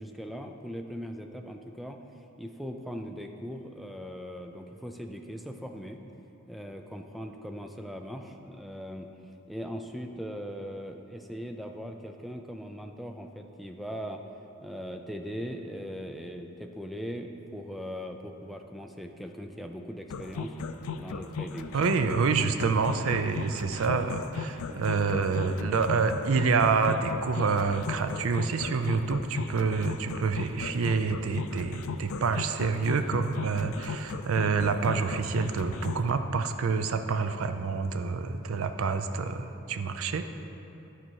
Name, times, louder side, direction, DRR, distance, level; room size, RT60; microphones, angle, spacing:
voice 1, 0.0-2.0 2.4-6.0 6.5-9.1 9.5-14.2 14.6-20.6 20.9-21.8 22.9-23.0 24.7-24.8, equal, ahead, 4 dB, 0.4 m, -39 dB
sound 1, 20.1-36.1, left 5 dB, 80° left, 0.4 m, -36 dB
voice 2, 21.7-40.3, right 5 dB, 75° right, 8 dB, 0.4 m, -27 dB
12.0 x 4.4 x 4.6 m, 2.9 s
head